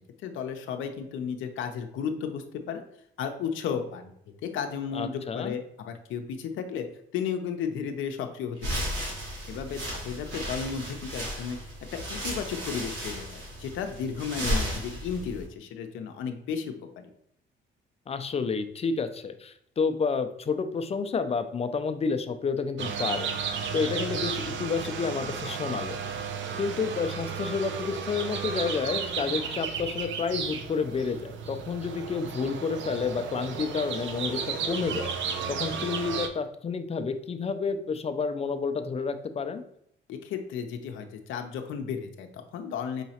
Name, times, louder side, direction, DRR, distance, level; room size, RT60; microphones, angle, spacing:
voice 1, 0.2-2.8 3.2-4.1 4.4-6.9 7.1-9.1 9.5-11.6 11.9-17.1 40.1-43.0, left 7 dB, 80° left, 5 dB, 0.6 m, -34 dB
voice 2, 4.9-5.5 14.4-14.8 18.1-23.3 23.7-26.0 26.6-34.4 34.7-35.1 35.5-39.6, left 5 dB, 30° left, 9 dB, 0.4 m, -30 dB
sound 1, 8.6-15.5, equal, 90° right, 1.3 m, -34 dB
sound 2, 22.8-36.3, right 6 dB, 70° right, 0.6 m, -33 dB
5.6 x 3.0 x 2.8 m, 0.73 s
cardioid pair, 90°, 20 cm